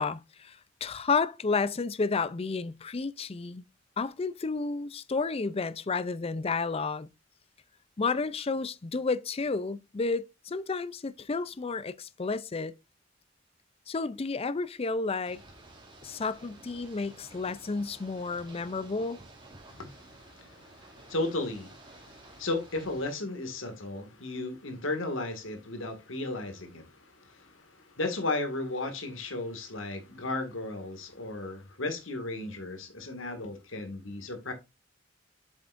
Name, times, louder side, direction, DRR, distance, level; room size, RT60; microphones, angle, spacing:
voice 1, 0.0-3.6 4.0-7.1 8.0-12.7 13.9-15.4 16.0-19.2, left 4 dB, 30° left, 0.5 m, -31 dB
Ocean / Boat Water vehicle, 15.3-23.1, right 2 dB, 25° right, 2.9 m, -52 dB
voice 2, 19.7-34.5, left 2 dB, 90° left, 2.1 m, -35 dB
8.1 x 7.1 x 2.5 m
head